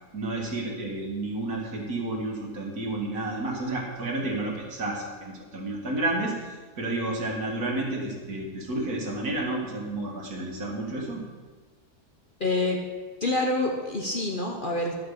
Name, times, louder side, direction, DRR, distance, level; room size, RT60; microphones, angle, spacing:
voice 1, 0.1-11.2, right 2 dB, 70° right, -1 dB, 2.4 m, -31 dB
voice 2, 12.4-12.8 13.2-15.0, left 2 dB, 40° left, 1 dB, 1.0 m, -26 dB
12.5 x 6.0 x 6.6 m, 1.4 s
omnidirectional pair, 1.7 m